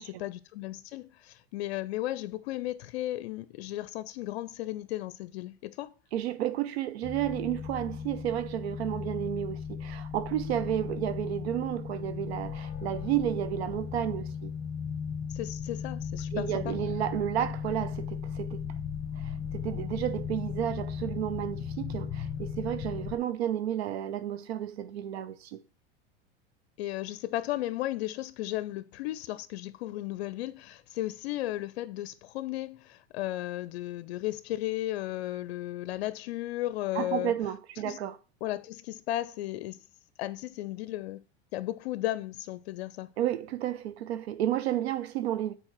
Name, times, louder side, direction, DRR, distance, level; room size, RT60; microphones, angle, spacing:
voice 1, 0.2-5.9 15.3-16.8 26.8-37.3 37.8-38.0 38.4-39.8 40.2-41.2 41.5-43.1, left 15 dB, 75° left, 0.5 m, -35 dB
voice 2, 6.1-14.5 16.3-18.7 19.2-25.6 36.9-38.2 43.2-45.5, right 11 dB, 80° right, 0.7 m, -32 dB
sound 1, 7.0-23.2, left 7 dB, 30° left, 1.1 m, -36 dB
6.4 x 4.5 x 6.0 m
hypercardioid pair, 105°, 31 cm